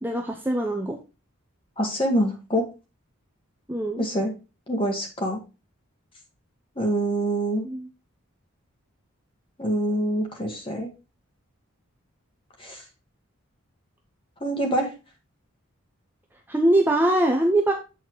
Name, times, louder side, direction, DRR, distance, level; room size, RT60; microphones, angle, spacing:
voice 1, 0.0-1.0 3.7-4.1 7.6-7.9 16.5-17.7, right 1 dB, 10° right, 2 dB, 0.7 m, -22 dB
voice 2, 1.8-2.7 4.0-4.3 4.7-5.4 6.7-7.7 9.6-10.9 12.6-12.8 14.4-14.9, right 1 dB, 25° left, 2 dB, 1.7 m, -25 dB
8.3 x 4.2 x 4.6 m, 0.30 s
head